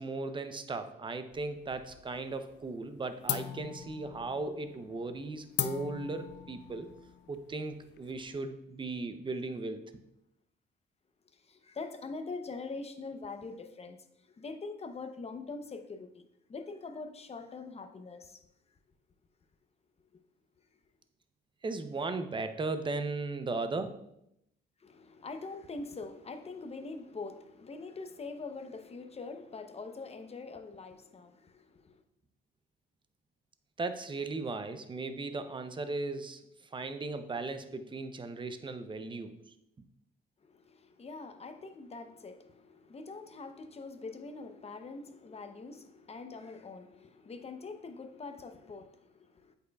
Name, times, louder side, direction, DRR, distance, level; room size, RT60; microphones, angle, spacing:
voice 1, 0.0-6.9 7.3-9.9 21.6-24.0 33.8-36.4 36.7-39.3, right 3 dB, 25° right, 9 dB, 0.6 m, -37 dB
sound 1, 1.3-2.2 2.5-2.9 3.3-8.4, left 11 dB, 65° left, 0.4 m, -39 dB
voice 2, 11.3-18.4 20.1-20.2 24.8-32.0 40.4-49.5, left 3 dB, 30° left, 7 dB, 0.7 m, -44 dB
7.8 x 5.4 x 2.3 m, 0.80 s
cardioid pair, 90°, 20 cm